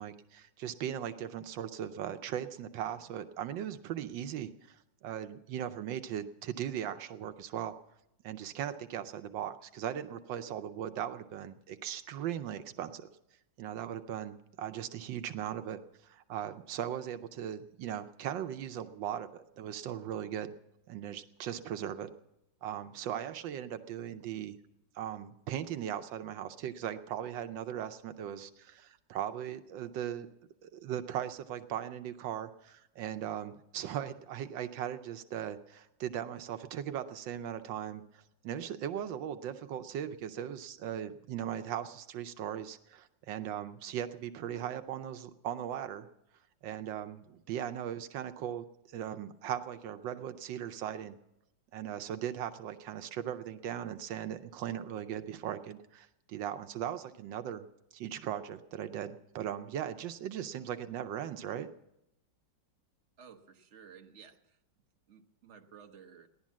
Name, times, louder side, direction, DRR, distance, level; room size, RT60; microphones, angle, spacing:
voice 1, 0.0-7.7 8.2-13.1 13.6-20.5 20.9-22.1 22.6-24.6 24.9-30.3 30.6-46.1 46.6-51.1 51.7-57.7 57.9-61.7, right 10 dB, 85° right, 10 dB, 1.4 m, -38 dB
voice 2, 63.2-64.6 65.1-66.3, right 7 dB, 45° right, 4 dB, 1.4 m, -54 dB
16.5 x 11.5 x 7.3 m, 0.84 s
omnidirectional pair, 2.0 m